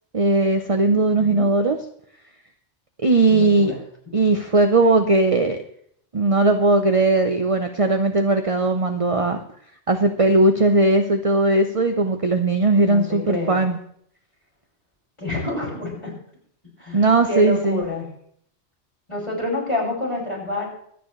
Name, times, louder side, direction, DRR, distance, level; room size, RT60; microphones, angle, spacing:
voice 1, 0.1-1.8 3.0-3.7 4.1-5.6 6.1-9.4 9.9-13.8 16.9-17.8, right 2 dB, 30° right, 5 dB, 0.9 m, -18 dB
voice 2, 3.3-3.8 12.8-13.6 15.2-16.1 16.8-18.1 19.1-20.7, left 2 dB, 25° left, -5 dB, 6.1 m, -28 dB
25.0 x 9.2 x 3.2 m, 0.65 s
omnidirectional pair, 1.2 m